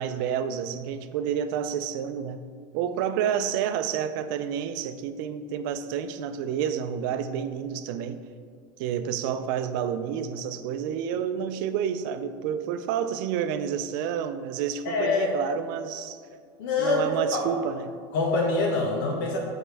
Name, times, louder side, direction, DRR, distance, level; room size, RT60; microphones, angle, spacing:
voice 1, 0.0-2.4 2.7-8.2 8.8-16.2 16.8-17.9, right 8 dB, 70° right, 10 dB, 0.4 m, -29 dB
voice 2, 14.8-15.3 16.6-17.5 18.1-19.4, left 3 dB, 90° left, 0 dB, 1.5 m, -25 dB
9.5 x 4.4 x 3.4 m, 2.1 s
cardioid pair, 160°, 11 cm